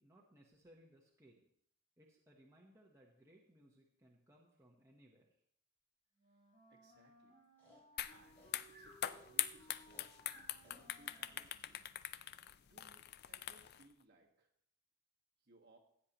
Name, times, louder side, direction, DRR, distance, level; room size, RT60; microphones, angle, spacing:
voice 1, 0.0-1.5 2.0-5.3, equal, 15° right, -2 dB, 1.0 m, -65 dB
Wind instrument woodwind instrument, 6.1-12.1, right 1 dB, 30° left, 4.5 m, -65 dB
voice 2, 6.7-7.4 8.1-8.4 8.7-10.2 10.6-11.8 12.5-14.5 15.4-15.8, right 2 dB, 45° right, 0 dB, 1.6 m, -67 dB
Breathing, 7.6-11.3, left 1 dB, 10° left, 5.2 m, -63 dB
sound 1, 8.0-8.1 8.4-13.8, left 11 dB, 45° left, 0.3 m, -42 dB
15.0 x 8.2 x 3.0 m, 0.69 s
head